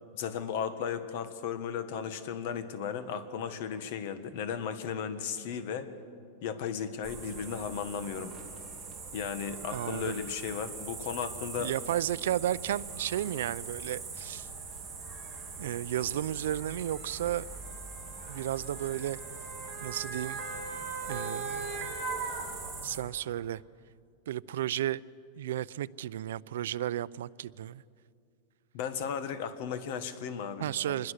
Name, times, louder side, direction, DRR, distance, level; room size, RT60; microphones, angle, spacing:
voice 1, 0.1-5.9 6.4-8.3 9.1-11.7 28.7-30.7, left 7 dB, 50° left, 1.6 m, -35 dB
sound 1, 7.0-23.0, right 4 dB, 5° right, 3.1 m, -43 dB
voice 2, 9.7-10.2 11.6-14.5 15.6-17.5 18.3-19.2 19.8-20.4 21.1-22.0 22.8-23.6 24.3-25.0 25.4-27.8 30.6-31.1, right 12 dB, 80° right, 0.5 m, -33 dB
Motor vehicle (road) / Siren, 14.2-14.4 15.5-23.1 23.5-23.6, right 4 dB, 25° right, 4.6 m, -40 dB
26.0 x 21.0 x 6.6 m
supercardioid pair, 170°, 0 cm